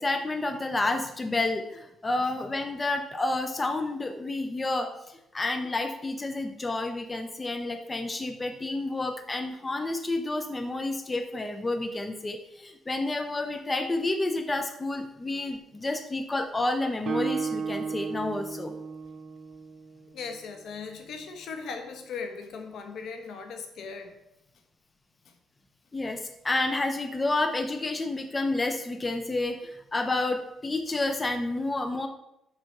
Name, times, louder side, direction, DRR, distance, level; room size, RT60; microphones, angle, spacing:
voice 1, 0.0-18.8 25.9-32.1, left 2 dB, 20° left, 7 dB, 0.7 m, -30 dB
Guitar, 17.0-20.7, right 5 dB, 55° right, 0.8 m, -34 dB
voice 2, 20.1-24.1, left 5 dB, 75° left, 6 dB, 1.3 m, -38 dB
6.4 x 5.9 x 5.8 m, 0.85 s
cardioid pair, 90°, 0 cm